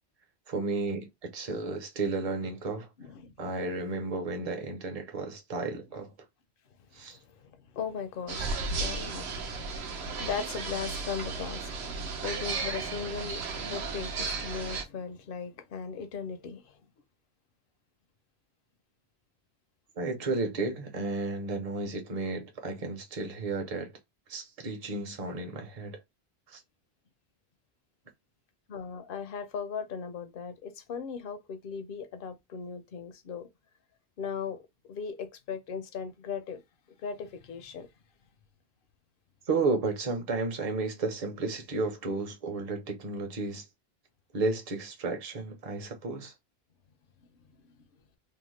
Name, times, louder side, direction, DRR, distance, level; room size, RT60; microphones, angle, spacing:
voice 1, 0.5-2.9 3.4-6.1 6.9-7.2 20.0-23.9 24.3-26.0 26.5-26.6 39.5-43.6 44.3-46.3, right 3 dB, 40° right, 0.7 m, -33 dB
voice 2, 3.0-3.6 7.1-16.7 28.7-33.5 34.2-36.6 37.0-37.9, left 6 dB, 65° left, 0.7 m, -38 dB
sound 1, 8.3-14.8, right 4 dB, 80° right, 0.9 m, -34 dB
2.8 x 2.1 x 3.0 m
omnidirectional pair, 1.1 m